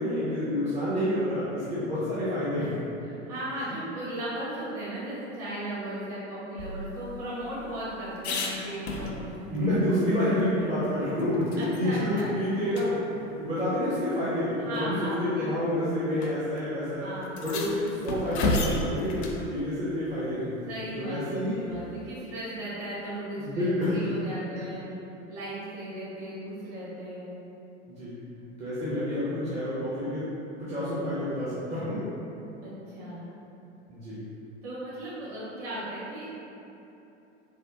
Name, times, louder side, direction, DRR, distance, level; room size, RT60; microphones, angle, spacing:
voice 1, 0.0-2.8 9.5-17.0 17.4-20.5 21.0-21.6 23.4-24.0 24.6-24.7 28.0-28.1 28.6-30.3 30.6-32.1 33.9-34.2, left 1 dB, 20° right, -12 dB, 0.6 m, -28 dB
voice 2, 3.2-9.5 11.6-12.3 14.5-15.5 17.0-17.6 20.7-24.8 25.3-27.3 32.6-33.3 34.6-36.4, right 1 dB, 40° right, -10 dB, 1.3 m, -36 dB
sound 1, 6.6-9.6 9.9-10.0 10.4-11.8 12.2-12.3 12.7-12.9 13.9-14.0 14.9-15.2 16.2-16.3 16.6-16.7 17.2-19.4 21.7-22.2, left 2 dB, 60° left, 0.5 m, -33 dB
3.4 x 2.1 x 2.6 m, 2.9 s
figure-of-eight pair, 85°, 37 cm